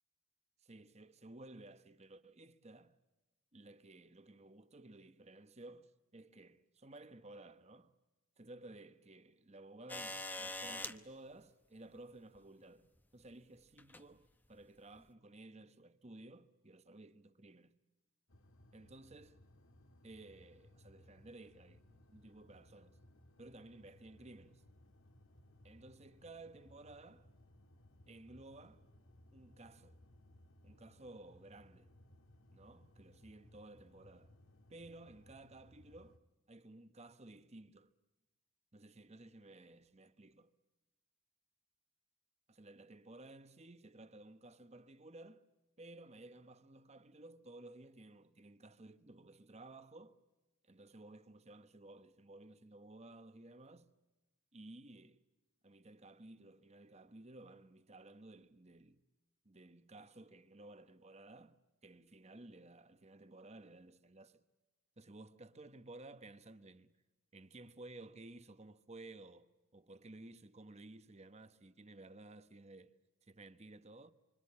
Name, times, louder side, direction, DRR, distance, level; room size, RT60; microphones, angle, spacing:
voice 1, 0.6-3.0 3.5-7.9 8.4-17.8 18.7-19.4 20.0-23.0 23.4-24.6 25.6-27.3 28.1-28.9 29.3-30.0 30.6-31.9 32.5-34.3 34.7-36.2 36.5-37.9 38.7-40.5 42.5-45.4 45.8-50.2 50.6-53.9 54.5-55.2 55.6-59.0 59.4-64.4 65.0-66.9 67.3-72.9 73.2-74.1, right 2 dB, 30° right, 1.1 m, -55 dB
sound 1, 9.9-11.0 12.4-12.5 13.8-14.1 15.0-15.1, left 2 dB, 10° left, 0.9 m, -43 dB
sound 2, 18.3-36.2, left 1 dB, 70° left, 1.9 m, -64 dB
26.5 x 25.5 x 8.6 m
head